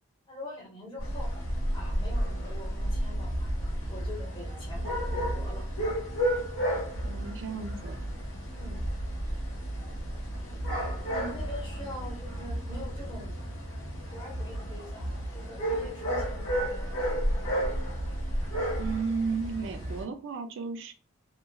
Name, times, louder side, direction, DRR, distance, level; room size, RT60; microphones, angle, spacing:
voice 1, 0.3-1.3 1.7-3.5 3.9-5.9 8.5-8.9 10.4-13.3 14.1-15.1 15.3-17.1, left 1 dB, 25° left, -3 dB, 1.1 m, -44 dB
sound 1, 1.0-20.0, equal, 65° left, 1.3 m, -32 dB
voice 2, 7.1-8.1 18.8-20.9, right 5 dB, 60° right, 7 dB, 0.4 m, -33 dB
3.0 x 2.4 x 2.3 m, 0.34 s
head